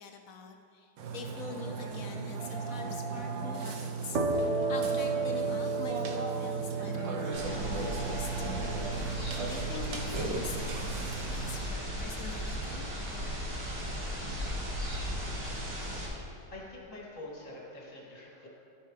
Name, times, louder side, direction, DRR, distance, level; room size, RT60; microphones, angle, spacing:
voice 1, 0.0-8.6 9.1-12.9, left 5 dB, 70° left, 5 dB, 0.8 m, -45 dB
Burping eructation, 1.0-11.6, right 4 dB, 85° right, 1.6 m, -36 dB
sound 1, 4.1-11.6, right 3 dB, 50° right, 1.1 m, -35 dB
sound 2, 7.3-16.1, equal, 70° right, 2.7 m, -36 dB
voice 2, 16.0-18.5, left 1 dB, 45° left, -5 dB, 2.7 m, -46 dB
15.5 x 6.9 x 3.2 m, 2.6 s
omnidirectional pair, 2.0 m